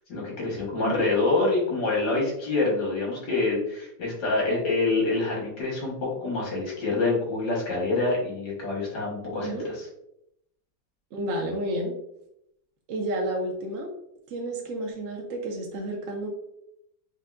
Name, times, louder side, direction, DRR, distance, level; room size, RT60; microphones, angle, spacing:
voice 1, 0.1-9.7, left 3 dB, 70° left, -4 dB, 1.9 m, -26 dB
voice 2, 0.7-1.1 9.3-9.7 11.1-12.0 12.9-13.9 14.3-16.3, right 1 dB, 65° right, 0 dB, 0.8 m, -31 dB
4.5 x 2.6 x 2.4 m, 0.79 s
omnidirectional pair, 1.8 m